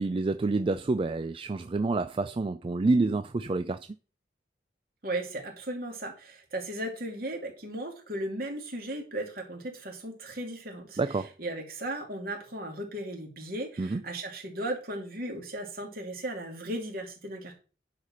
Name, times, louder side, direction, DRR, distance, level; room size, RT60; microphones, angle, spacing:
voice 1, 0.0-3.8 11.0-11.3 13.8-14.0, right 3 dB, 30° right, 0.4 m, -28 dB
voice 2, 5.0-17.5, right 1 dB, 55° right, 2.8 m, -36 dB
10.5 x 4.9 x 5.7 m
head